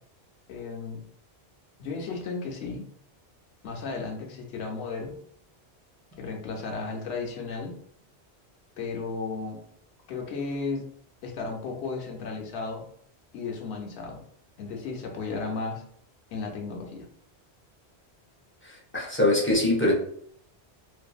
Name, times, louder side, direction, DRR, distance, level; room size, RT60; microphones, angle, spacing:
voice 1, 0.5-1.0 1.8-2.9 3.6-5.1 6.2-7.8 8.8-9.6 10.1-10.8 11.2-12.8 13.3-14.2 14.6-15.8 16.3-17.1, left 4 dB, 80° left, 1 dB, 0.9 m, -34 dB
voice 2, 18.6-19.9, left 2 dB, 20° left, -3 dB, 0.3 m, -23 dB
2.7 x 2.5 x 2.3 m, 0.64 s
omnidirectional pair, 1.1 m